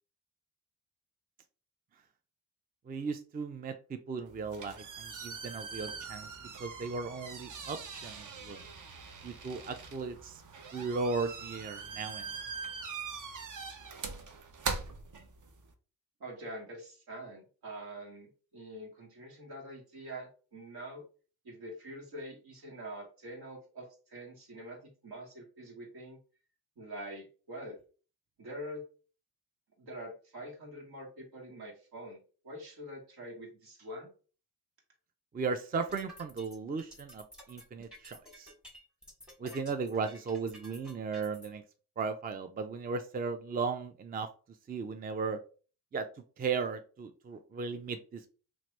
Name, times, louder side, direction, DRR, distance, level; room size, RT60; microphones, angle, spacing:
voice 1, 2.9-6.3 6.6-8.6 9.2-10.4 10.7-12.3 35.3-38.5 39.4-41.6 42.0-44.3 44.7-45.4 45.9-46.1 46.4-48.3, right 4 dB, 25° right, 8 dB, 0.4 m, -36 dB
sound 1, 4.3-15.7, right 5 dB, 50° right, 0.7 m, -42 dB
voice 2, 16.2-21.0 21.4-26.2 26.8-27.8 28.4-28.9 29.8-34.1, right 1 dB, 70° right, -1 dB, 1.5 m, -45 dB
sound 2, 35.7-41.5, equal, ahead, 1.1 m, -52 dB
2.9 x 2.6 x 3.2 m, 0.37 s
supercardioid pair, 55°, 39 cm